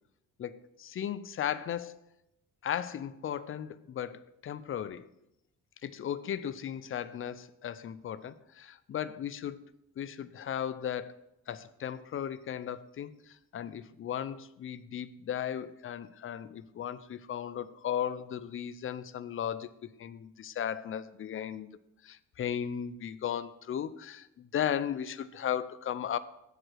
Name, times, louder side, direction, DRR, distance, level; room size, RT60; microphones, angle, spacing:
voice 1, 0.4-2.0 2.6-5.1 5.8-9.6 10.0-11.2 11.5-19.7 20.0-21.7 22.0-26.2, left 9 dB, 45° left, 15 dB, 0.5 m, -36 dB
7.3 x 4.9 x 6.2 m, 0.87 s
cardioid pair, 90°, 30 cm